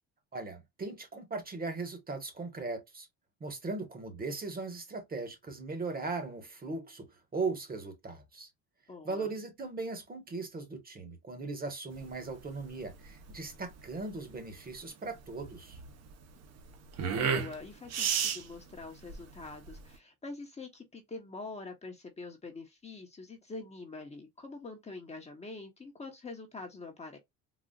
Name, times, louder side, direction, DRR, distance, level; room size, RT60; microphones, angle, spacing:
voice 1, 0.3-3.1 3.4-8.5 9.0-15.8, right 3 dB, 25° right, 1.1 m, -38 dB
voice 2, 8.9-9.3 17.0-27.2, left 3 dB, 20° left, 0.8 m, -45 dB
sound 1, 11.9-20.0, right 7 dB, 50° right, 0.9 m, -35 dB
4.0 x 2.4 x 2.3 m
cardioid pair, 115°, 33 cm